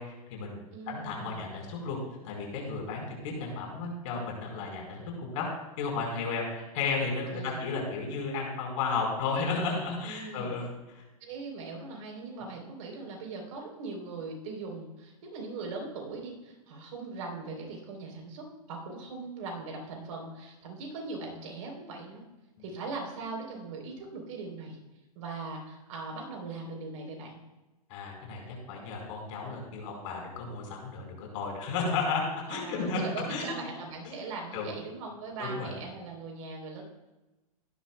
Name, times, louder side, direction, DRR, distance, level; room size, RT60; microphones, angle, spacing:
voice 1, 0.0-2.0 2.2-5.4 5.8-11.0 27.9-33.6 34.0-34.2 34.5-34.7 35.4-35.7, left 4 dB, 55° left, 0 dB, 4.6 m, -33 dB
voice 2, 0.7-1.4 7.3-7.6 10.0-10.5 11.2-22.2 22.6-24.8 25.1-27.4 32.5-36.8, right 3 dB, 60° right, 1 dB, 3.8 m, -40 dB
16.0 x 12.0 x 2.3 m, 1.0 s
hypercardioid pair, 110°, 19 cm